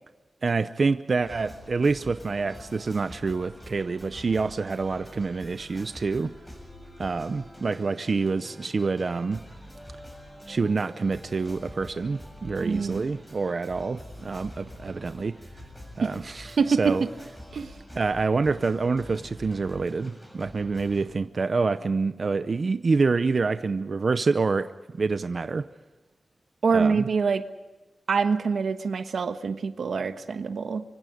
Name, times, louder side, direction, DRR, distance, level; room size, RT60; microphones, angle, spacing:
voice 1, 0.4-6.3 7.0-9.4 10.5-15.4 16.0-17.0 17.9-25.7 26.7-27.1, right 4 dB, 50° right, 11 dB, 0.6 m, -27 dB
sound 1, 1.2-21.1, equal, 10° left, 7.2 m, -45 dB
voice 2, 12.6-13.1 16.0-16.1 16.6-17.0 17.5-17.7 26.6-27.4 28.1-30.8, right 5 dB, 85° right, 9 dB, 1.3 m, -25 dB
25.0 x 25.0 x 5.2 m, 1.2 s
wide cardioid pair, 115°, 0 cm